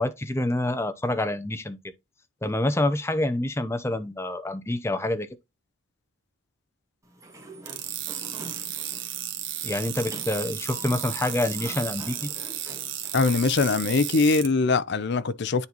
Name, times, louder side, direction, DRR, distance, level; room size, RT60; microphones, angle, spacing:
voice 1, 0.0-1.8 2.4-5.3 9.6-12.3, left 1 dB, 10° left, 0.7 m, -27 dB
Sliding door, 7.0-13.5, right 1 dB, 15° right, 1.5 m, -45 dB
sound 1, 7.7-14.5, right 11 dB, 55° right, 1.4 m, -34 dB
voice 2, 13.1-15.7, left 4 dB, 50° left, 0.5 m, -22 dB
9.7 x 3.9 x 2.9 m
head